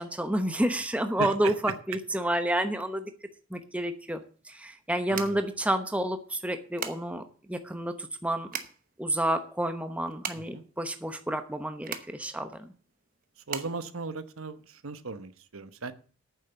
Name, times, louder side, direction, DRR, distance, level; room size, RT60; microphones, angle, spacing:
voice 1, 0.0-3.1 3.5-4.2 4.4-8.5 9.0-12.7, right 1 dB, 5° right, 7 dB, 0.9 m, -30 dB
voice 2, 1.2-1.5 5.1-5.4 10.3-10.6 13.5-15.9, right 4 dB, 75° right, 12 dB, 1.0 m, -37 dB
sound 1, 3.7-14.9, right 7 dB, 40° right, 1.0 m, -42 dB
9.2 x 7.0 x 7.9 m, 0.41 s
head